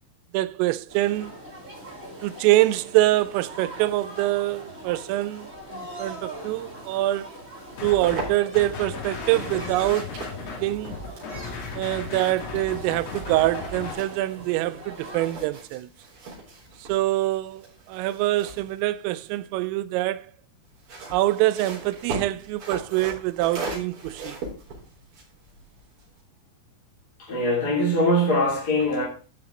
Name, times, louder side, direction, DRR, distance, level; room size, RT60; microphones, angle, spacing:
voice 1, 0.3-1.3 2.2-7.3 7.8-10.1 10.4-11.0 11.8-15.9 16.8-20.3 21.1-24.4, right 16 dB, 90° right, 3.2 m, -25 dB
sound 1, 0.9-15.3, right 1 dB, 15° right, 4.1 m, -41 dB
sound 2, 7.7-8.7 9.3-14.7 15.0-19.6 20.6-26.2, right 3 dB, 40° right, 5.2 m, -39 dB
sound 3, 7.8-8.3 8.5-13.9, left 5 dB, 55° left, 4.4 m, -35 dB
voice 2, 27.2-29.1, equal, 25° left, 2.5 m, -22 dB
14.5 x 5.8 x 3.7 m
omnidirectional pair, 5.7 m